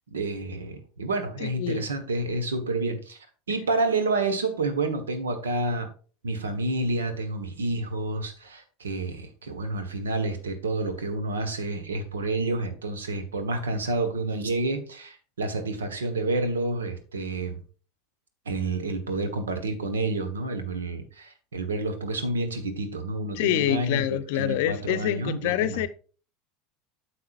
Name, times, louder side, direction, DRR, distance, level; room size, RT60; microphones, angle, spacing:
voice 1, 0.1-3.2 3.5-5.9 6.2-17.6 18.4-24.0 24.3-25.9, right 2 dB, 85° right, 1.3 m, -29 dB
voice 2, 1.4-1.9 23.3-25.9, left 13 dB, 65° left, 0.6 m, -26 dB
9.6 x 6.4 x 2.5 m
hypercardioid pair, 85°, 0 cm